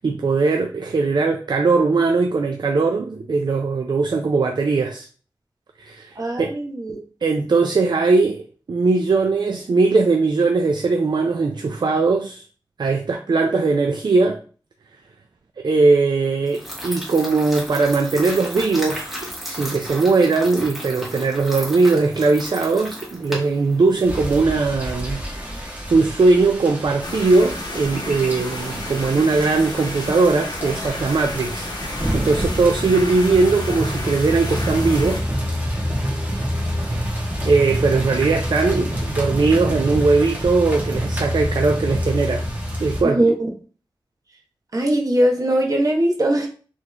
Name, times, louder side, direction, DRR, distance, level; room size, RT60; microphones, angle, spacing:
voice 1, 0.0-5.1 5.8-6.5 7.2-8.4 8.7-12.4 12.8-14.4 15.6-25.5 25.9-35.3 37.0-37.1 37.4-42.4 42.8-43.2, right 3 dB, 60° right, 0.4 m, -19 dB
voice 2, 6.2-7.0 43.1-43.3 44.7-46.5, right 1 dB, 45° right, 1.0 m, -20 dB
sound 1, 16.5-24.4, equal, ahead, 1.5 m, -34 dB
sound 2, 24.0-43.0, equal, 20° right, 1.4 m, -27 dB
sound 3, 27.0-35.2, left 2 dB, 55° left, 0.8 m, -32 dB
4.1 x 3.1 x 3.3 m
wide cardioid pair, 80°, 8 cm